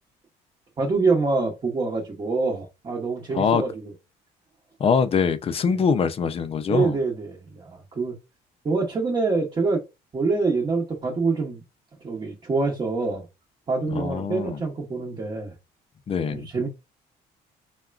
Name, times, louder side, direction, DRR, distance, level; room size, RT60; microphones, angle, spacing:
voice 1, 0.8-3.9 5.7-5.8 6.7-8.1 8.6-9.8 10.1-11.6 12.0-13.2 13.7-15.5 16.3-16.7, right 3 dB, 30° right, 0.9 m, -25 dB
voice 2, 4.8-7.0 13.9-14.6 16.1-16.5, left 6 dB, 35° left, 0.4 m, -23 dB
3.6 x 2.2 x 2.3 m
cardioid pair, 110°, 17 cm